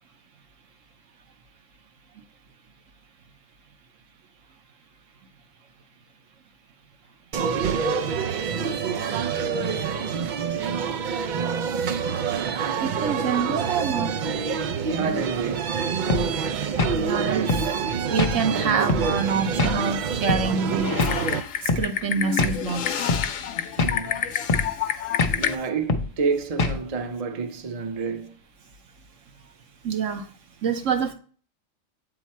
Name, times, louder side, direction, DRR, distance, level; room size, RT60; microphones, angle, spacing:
sound 1, 7.3-21.4, right 6 dB, 90° right, 0.4 m, -27 dB
voice 1, 12.8-14.2 16.8-17.5 18.1-21.0 21.6-23.2 29.8-30.3 30.6-31.1, right 6 dB, 70° right, 1.3 m, -26 dB
voice 2, 14.9-15.7 23.8-24.2 25.3-28.4, right 5 dB, 35° right, 0.6 m, -29 dB
sound 2, 16.1-16.3 16.8-17.0 17.5-17.7 18.2-18.4 18.9-19.1 19.6-19.8 20.3-20.5 21.0-21.2 21.7-21.9 22.4-22.6 23.1-23.3 23.8-24.0 24.5-24.7 25.2-25.4 25.9-26.1 26.6-26.8, left 3 dB, 40° left, 0.6 m, -23 dB
Typing, 20.8-25.5, left 10 dB, 75° left, 1.0 m, -28 dB
8.2 x 3.7 x 4.2 m
omnidirectional pair, 1.4 m